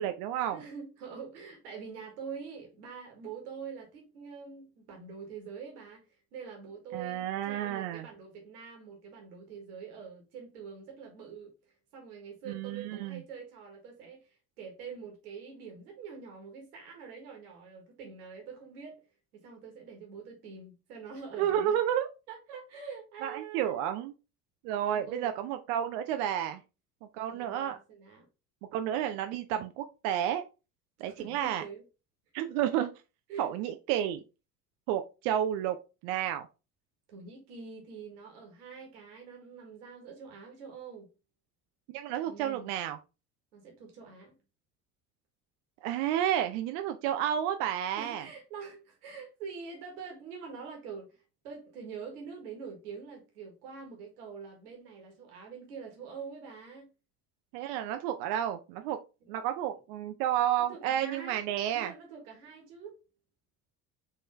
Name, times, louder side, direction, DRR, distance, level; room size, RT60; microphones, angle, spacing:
voice 1, 0.0-0.6 6.9-8.1 12.5-13.2 21.4-22.1 23.2-24.1 24.6-26.6 27.1-27.8 28.7-30.4 31.0-31.6 32.3-32.9 33.4-34.2 34.9-35.8 36.0-36.5 41.9-43.0 45.8-48.3 57.5-59.0 59.3-61.9, right 10 dB, 50° right, 0.6 m, -31 dB
voice 2, 0.5-6.0 6.3-11.5 11.9-14.2 14.6-19.0 19.3-21.7 22.3-23.8 24.9-25.3 27.3-28.2 31.2-31.8 33.3-33.5 37.1-41.1 42.3-42.7 43.5-44.4 48.0-56.9 59.2-59.4 60.7-62.9, right 5 dB, 70° right, 1.5 m, -45 dB
4.4 x 3.1 x 3.1 m
figure-of-eight pair, 60°, 47 cm